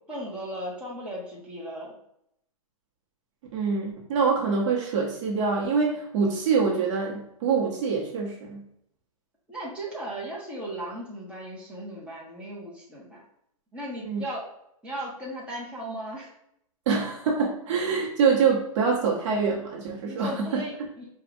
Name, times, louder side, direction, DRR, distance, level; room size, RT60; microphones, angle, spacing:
voice 1, 0.1-1.9 9.5-13.2 13.7-14.5 14.8-16.3 20.0-21.1, right 1 dB, 5° right, -6 dB, 1.1 m, -36 dB
voice 2, 3.5-8.6 14.0-14.2 16.9-20.6, right 5 dB, 55° right, -2 dB, 1.0 m, -25 dB
4.5 x 2.4 x 2.6 m, 0.74 s
hypercardioid pair, 130°, 19 cm